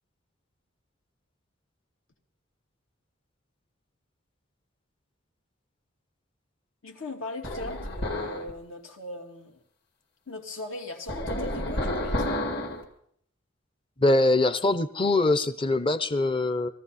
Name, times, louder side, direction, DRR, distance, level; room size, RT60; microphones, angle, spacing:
voice 1, 6.8-9.6 10.3-12.3, left 2 dB, 80° left, 2 dB, 2.5 m, -39 dB
sound 1, 7.4-8.5 11.1-12.8, left 1 dB, 55° left, 2.2 m, -30 dB
voice 2, 14.0-16.7, left 2 dB, 25° left, 12 dB, 0.6 m, -23 dB
21.5 x 14.5 x 4.1 m, 0.65 s
head